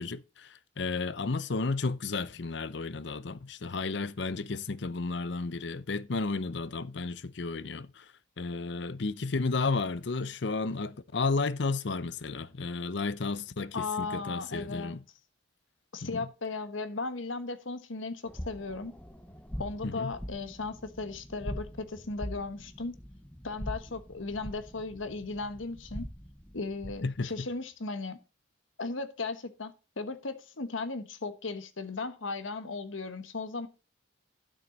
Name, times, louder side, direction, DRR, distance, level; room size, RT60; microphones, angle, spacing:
voice 1, 0.0-8.1 8.4-15.0 16.1-16.3 19.8-20.1 27.0-27.3, left 3 dB, 65° left, 0.7 m, -32 dB
voice 2, 13.7-15.0 15.9-18.9 19.6-22.9 23.4-26.1 26.5-28.2 28.8-33.7, left 3 dB, 85° left, 1.3 m, -36 dB
sound 1, 18.3-27.2, equal, 5° left, 0.9 m, -43 dB
12.0 x 6.4 x 4.0 m
head